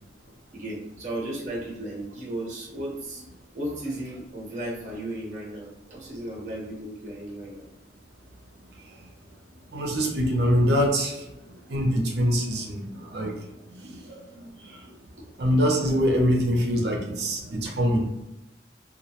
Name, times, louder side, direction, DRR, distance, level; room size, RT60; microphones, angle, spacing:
voice 1, 0.5-3.2 3.5-7.6 15.2-15.3 17.6-17.7, right 1 dB, 40° right, -3 dB, 0.8 m, -35 dB
voice 2, 9.7-14.9 15.4-18.1, equal, 70° right, 1 dB, 0.6 m, -25 dB
2.3 x 2.1 x 2.9 m, 0.90 s
head